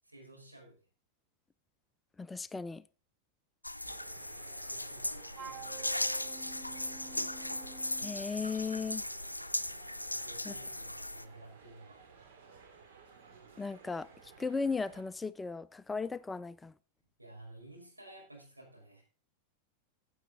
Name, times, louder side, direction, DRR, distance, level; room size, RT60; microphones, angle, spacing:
voice 1, 0.0-0.8 4.0-6.2 10.1-12.1 17.2-19.0, right 1 dB, 85° right, 5.1 m, -54 dB
voice 2, 2.2-2.8 8.0-9.0 10.4-10.5 13.6-16.7, left 4 dB, 10° left, 0.4 m, -36 dB
sound 1, 3.6-11.2, left 1 dB, 85° left, 0.5 m, -38 dB
sound 2, 3.8-15.0, right 5 dB, 55° right, 2.8 m, -56 dB
Wind instrument woodwind instrument, 5.3-8.2, right 6 dB, 25° right, 1.0 m, -49 dB
15.0 x 7.9 x 3.8 m
figure-of-eight pair, 90°, 0 cm